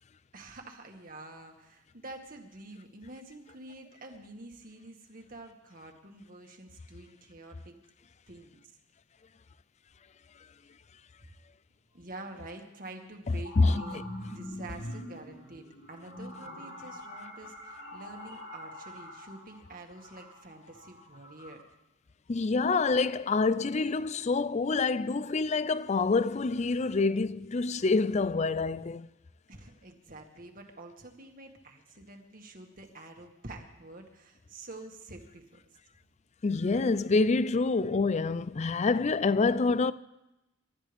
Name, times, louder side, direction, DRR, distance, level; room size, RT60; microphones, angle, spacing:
voice 1, 0.3-7.8 8.3-8.6 11.9-14.0 14.3-21.7 29.5-35.5, right 2 dB, 45° right, 2.0 m, -47 dB
sound 1, 13.0-21.5, left 1 dB, 90° left, 5.2 m, -44 dB
voice 2, 22.3-29.1 36.4-39.9, left 3 dB, 35° left, 0.4 m, -26 dB
28.0 x 13.0 x 3.5 m
head